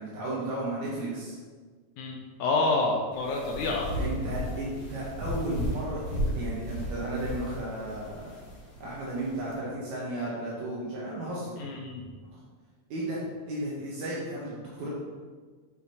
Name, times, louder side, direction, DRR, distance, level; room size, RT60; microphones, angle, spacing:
voice 1, 0.0-1.4 4.0-8.3 8.8-11.5 12.9-14.9, right 1 dB, 75° right, -6 dB, 2.5 m, -34 dB
voice 2, 2.0-3.9 11.6-12.0, left 3 dB, 80° left, -1 dB, 2.1 m, -28 dB
sound 1, 3.1-9.5, equal, 60° left, 0.9 m, -35 dB
8.2 x 5.5 x 2.8 m, 1.5 s
omnidirectional pair, 3.4 m